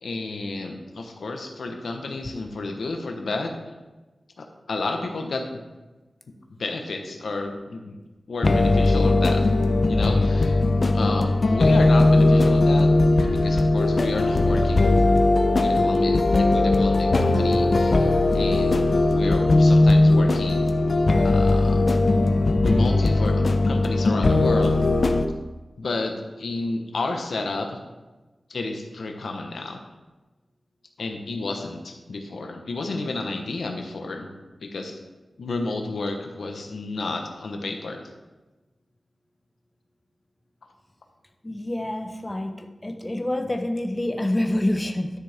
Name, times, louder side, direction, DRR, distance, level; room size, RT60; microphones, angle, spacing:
voice 1, 0.0-3.5 4.4-5.6 6.6-8.0 8.3-9.5 9.9-10.6 10.9-14.9 15.5-20.8 21.2-21.9 22.6-24.8 25.8-27.8 28.5-29.8 31.0-34.3 34.6-34.9 35.4-38.0, left 3 dB, 90° left, 3 dB, 1.1 m, -31 dB
sound 1, 8.4-25.3, left 2 dB, 55° left, 0.6 m, -19 dB
voice 2, 41.4-45.1, left 1 dB, 20° left, 5 dB, 0.7 m, -27 dB
11.0 x 6.5 x 3.5 m, 1.1 s
wide cardioid pair, 90°, 0 cm